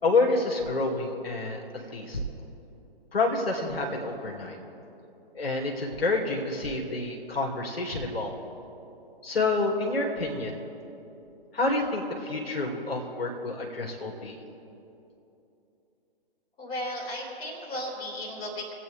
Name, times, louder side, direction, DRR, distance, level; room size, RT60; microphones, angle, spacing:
voice 1, 0.0-2.2 3.1-4.6 5.3-8.3 9.2-10.6 11.5-14.4, left 3 dB, 70° left, -1 dB, 2.3 m, -28 dB
voice 2, 16.6-18.7, left 1 dB, 15° left, -4 dB, 3.3 m, -35 dB
24.0 x 8.5 x 3.4 m, 2.9 s
figure-of-eight pair, 130°, 31 cm